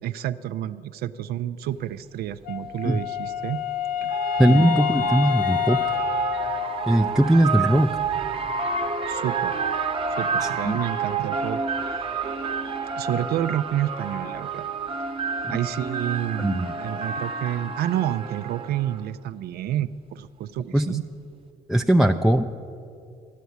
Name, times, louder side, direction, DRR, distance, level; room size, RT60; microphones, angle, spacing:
voice 1, 0.0-3.6 4.0-4.1 4.4-5.1 9.1-9.6 10.1-11.6 12.9-14.7 15.5-21.0, right 11 dB, 70° right, 12 dB, 0.4 m, -29 dB
sound 1, 1.9-2.0 3.4-19.0, right 5 dB, 35° right, 1.0 m, -29 dB
Wind instrument woodwind instrument, 2.5-7.2, left 12 dB, 55° left, 0.6 m, -28 dB
voice 2, 4.4-5.8 6.9-7.9 10.4-10.7 16.4-16.7 20.7-21.0 21.7-22.5, right 1 dB, ahead, 4 dB, 0.4 m, -20 dB
11.5 x 8.3 x 9.3 m, 2.5 s
cardioid pair, 110°, 17 cm